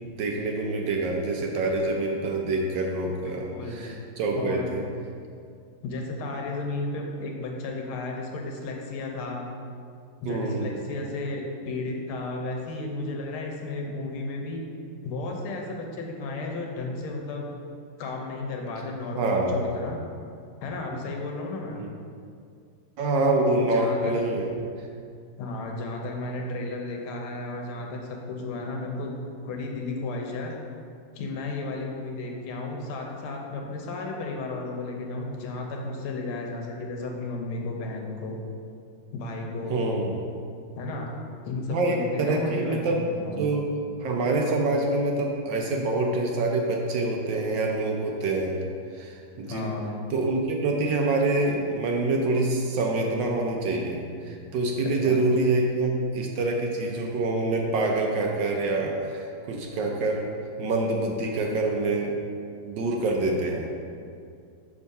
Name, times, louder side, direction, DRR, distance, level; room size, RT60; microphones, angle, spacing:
voice 1, 0.2-4.8 10.3-10.8 19.2-19.6 20.9-21.0 21.7-21.9 23.0-24.9 39.7-40.2 41.7-43.0 43.4-43.7 44.0-48.6 48.9-49.8 50.1-60.3 60.6-62.1 62.6-63.8, right 2 dB, 70° right, 1 dB, 1.2 m, -26 dB
voice 2, 3.3-3.9 4.3-4.8 5.8-9.5 10.2-14.6 15.0-17.5 18.0-20.0 20.6-21.8 23.6-24.1 25.4-29.2 29.4-30.5 31.1-38.4 39.1-39.8 40.7-41.1 41.4-43.0 43.2-43.5 49.5-50.0 54.8-55.2, left 2 dB, 85° left, 1 dB, 1.7 m, -33 dB
6.1 x 3.6 x 5.3 m, 2.3 s
omnidirectional pair, 2.3 m